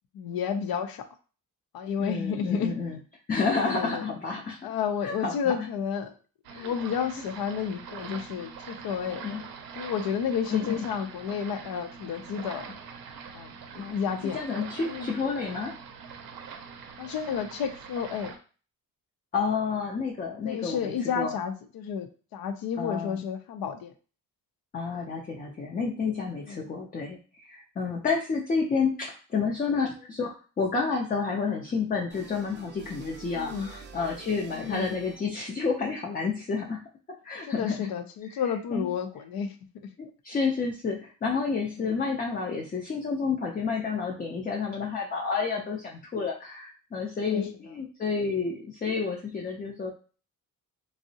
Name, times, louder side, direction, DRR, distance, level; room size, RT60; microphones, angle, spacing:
voice 1, 0.1-1.0 1.7-2.7 3.5-4.0 4.6-6.1 6.5-9.3 9.8-12.7 13.3-14.4 14.8-15.1 17.0-18.3 20.4-23.9 24.9-25.0 26.5-26.6 33.4-33.7 34.5-35.0 37.5-39.5 41.8-41.9 47.2-47.4, left 7 dB, 85° left, 8 dB, 0.5 m, -31 dB
voice 2, 2.0-3.0 3.3-4.7 5.0-5.7 6.5-6.7 9.2-9.5 10.5-10.9 13.8-14.0 14.3-15.8 19.3-21.4 22.8-23.2 24.7-36.8 37.2-37.9 38.7-38.9 40.0-49.9, left 5 dB, 25° left, -1 dB, 0.4 m, -30 dB
sound 1, 6.4-18.4, right 6 dB, 90° right, 0.5 m, -43 dB
sound 2, 32.1-35.5, right 4 dB, 30° right, 0.4 m, -47 dB
3.5 x 2.0 x 2.6 m, 0.37 s
wide cardioid pair, 150°, 35 cm